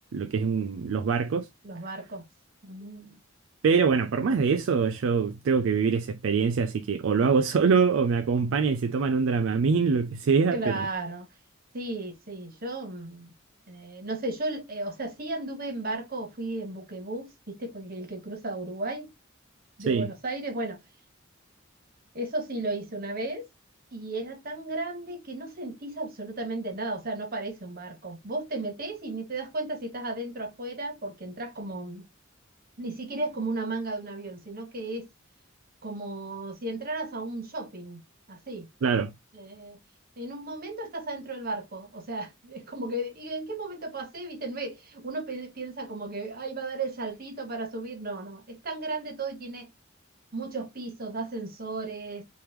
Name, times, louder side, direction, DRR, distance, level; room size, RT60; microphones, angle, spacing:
voice 1, 0.1-1.5 3.6-10.9 19.8-20.1 38.8-39.1, right 5 dB, 70° right, 0.4 m, -24 dB
voice 2, 1.6-2.2 2.6-3.2 10.5-11.3 11.7-13.3 13.7-19.1 19.8-20.8 22.1-23.5 23.9-32.0 32.8-35.1 35.8-38.0 38.3-38.7 39.3-39.8 40.2-49.7 50.3-52.2, right 2 dB, 45° right, 1.2 m, -35 dB
3.4 x 3.1 x 3.0 m
head